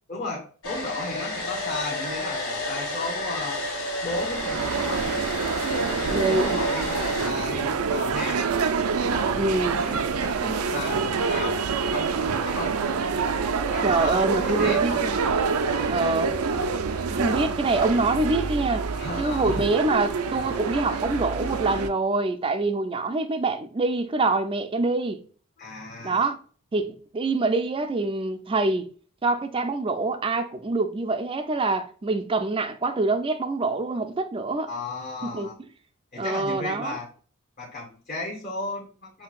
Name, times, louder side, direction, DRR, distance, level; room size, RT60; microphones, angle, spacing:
voice 1, 0.1-3.6 4.0-5.2 5.7-8.4 9.1-11.6 11.9-12.7 13.7-15.0 15.7-16.1 18.9-19.7 25.6-26.2 34.7-35.5 36.1-37.1 37.6-39.2, left 2 dB, 40° left, 0.9 m, -35 dB
Domestic sounds home sounds, 0.6-7.3, left 1 dB, 70° left, 1.6 m, -31 dB
sound 1, 4.1-21.9, right 5 dB, 85° right, 0.4 m, -26 dB
voice 2, 6.1-6.6 9.4-9.8 13.8-15.2 15.9-16.3 17.1-18.9 19.2-25.2 26.0-26.4 26.7-28.9 29.2-34.7 35.2-35.5 36.2-37.0, right 3 dB, 25° right, 0.4 m, -25 dB
5.6 x 2.7 x 2.3 m
head